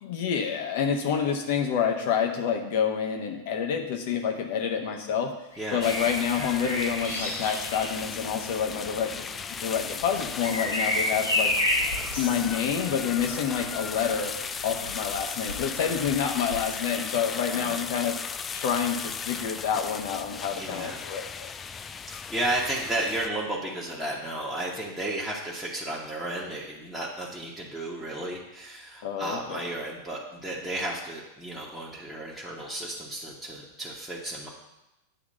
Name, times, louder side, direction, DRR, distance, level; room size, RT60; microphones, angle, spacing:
voice 1, 0.0-5.3 5.7-9.2 9.6-11.5 12.2-14.3 14.6-18.2 18.5-21.5 29.0-29.7, left 7 dB, 50° left, 3 dB, 1.1 m, -28 dB
Bird vocalization bird call bird song, 5.5-17.3 19.0-19.3, left 1 dB, 80° left, 3.2 m, -33 dB
sound 1, 5.8-23.3, left 6 dB, 20° left, 0.3 m, -36 dB
voice 2, 17.5-17.8 20.6-21.0 22.1-34.5, right 1 dB, ahead, -7 dB, 1.3 m, -33 dB
9.0 x 3.6 x 6.4 m, 0.92 s
figure-of-eight pair, 90°, 0 cm